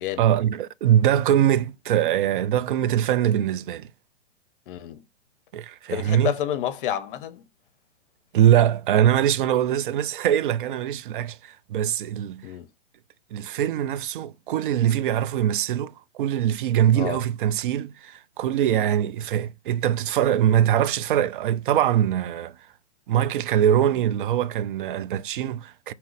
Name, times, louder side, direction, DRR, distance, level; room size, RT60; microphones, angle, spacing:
voice 1, 0.2-3.9 5.5-6.3 8.3-12.4 13.3-22.6 23.1-25.9, right 10 dB, 45° right, 0.4 m, -22 dB
voice 2, 4.7-5.0 5.9-7.4 12.4-12.7 17.0-17.2, left 11 dB, 45° left, 0.8 m, -29 dB
5.2 x 2.9 x 3.2 m
hypercardioid pair, 120°, 36 cm